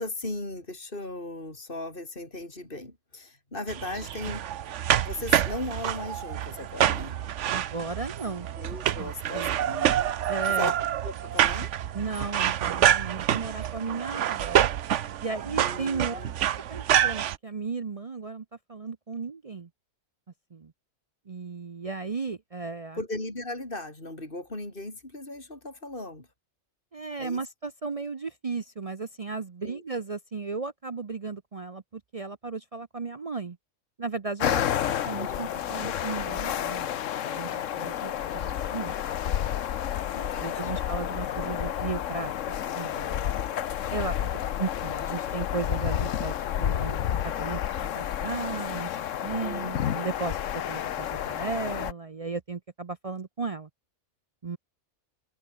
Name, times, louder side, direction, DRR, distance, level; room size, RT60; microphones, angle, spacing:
voice 1, 0.0-4.5 5.0-7.2 8.6-10.1 10.5-10.8 11.0-11.7 15.5-16.3 23.0-26.3 27.2-27.4 29.6-29.8 34.4-34.8 35.2-35.4 40.1-40.8 41.3-41.5 49.4-49.7, left 2 dB, 40° left, 6.0 m, -37 dB
sound 1, 3.7-17.4, right 10 dB, 60° right, 1.0 m, -27 dB
voice 2, 7.5-8.5 9.0-9.5 10.3-10.7 11.9-14.7 15.2-16.2 16.7-19.7 20.5-20.7 21.3-23.0 26.9-33.6 34.0-36.9 37.2-39.0 39.2-39.4 40.4-43.3 43.9-44.2 44.6-49.0 49.2-50.4 50.7-53.7 54.4-54.6, right 4 dB, 40° right, 0.5 m, -35 dB
sound 2, 34.4-51.9, left 10 dB, 65° left, 1.1 m, -30 dB
open air
omnidirectional pair, 1.5 m